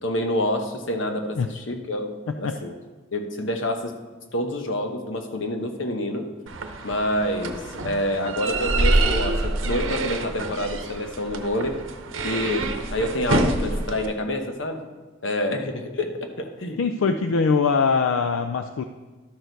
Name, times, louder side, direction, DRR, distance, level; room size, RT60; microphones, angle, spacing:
voice 1, 0.0-2.7 3.1-3.9 4.3-6.3 6.8-11.8 12.2-14.8 15.2-16.8 17.1-17.2, left 1 dB, 70° left, 5 dB, 1.0 m, -27 dB
sound 1, 6.5-14.1, right 2 dB, 75° right, 0.8 m, -26 dB
voice 2, 16.8-18.8, left 5 dB, 90° left, 8 dB, 0.4 m, -22 dB
12.5 x 6.3 x 4.0 m, 1.3 s
head